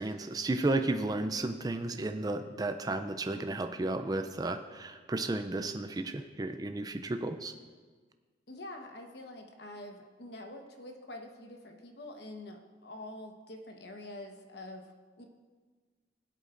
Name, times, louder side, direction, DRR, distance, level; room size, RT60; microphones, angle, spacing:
voice 1, 0.0-7.5, right 2 dB, 20° right, 7 dB, 0.4 m, -33 dB
voice 2, 8.5-15.2, left 1 dB, 65° left, 3 dB, 1.1 m, -46 dB
18.0 x 8.2 x 2.5 m, 1.5 s
head